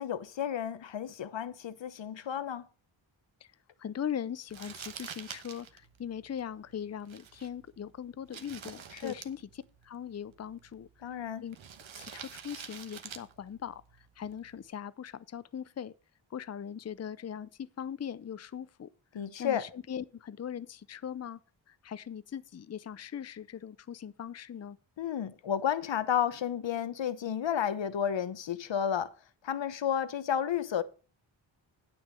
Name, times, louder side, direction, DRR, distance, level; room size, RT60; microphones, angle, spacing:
voice 1, 0.0-2.6 9.0-9.1 11.0-11.4 19.1-19.7 25.0-29.1 29.4-30.8, left 9 dB, 65° left, 0.9 m, -32 dB
voice 2, 3.8-10.9 11.4-11.6 12.0-13.8 14.2-15.9 16.3-18.9 19.4-21.4 21.7-24.8, left 8 dB, 35° left, 0.5 m, -40 dB
Crumpling crinkling, 4.5-14.7, right 7 dB, 70° right, 1.2 m, -49 dB
9.4 x 6.2 x 6.2 m
wide cardioid pair, 100°, 48 cm